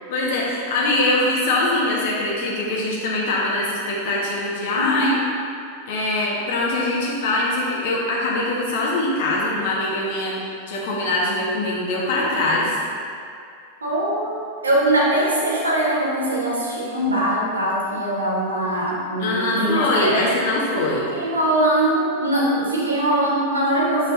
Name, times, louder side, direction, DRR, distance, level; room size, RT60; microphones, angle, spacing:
voice 1, 0.1-5.2 5.9-12.8 19.2-21.0, left 2 dB, 55° left, -4 dB, 1.3 m, -22 dB
voice 2, 4.8-5.2 13.8-20.3 21.0-24.1, right 1 dB, 75° right, -5 dB, 1.3 m, -22 dB
7.4 x 5.3 x 2.7 m, 2.4 s
figure-of-eight pair, 90°, 0 cm